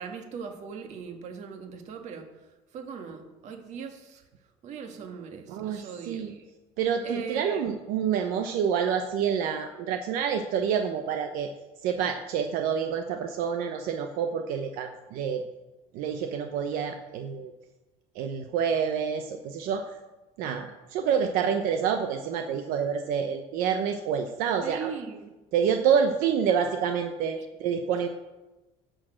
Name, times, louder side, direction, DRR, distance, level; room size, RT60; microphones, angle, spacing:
voice 1, 0.0-2.3 2.7-4.2 4.6-6.3 7.0-7.6 24.6-25.3 27.4-27.5, right 6 dB, 55° right, 5 dB, 1.7 m, -39 dB
voice 2, 5.5-6.3 6.8-11.5 11.8-15.4 15.9-17.5 18.2-19.9 20.4-24.9 25.5-28.1, right 7 dB, 80° right, 5 dB, 0.9 m, -28 dB
11.0 x 6.5 x 7.6 m, 1.1 s
cardioid pair, 150°, 15 cm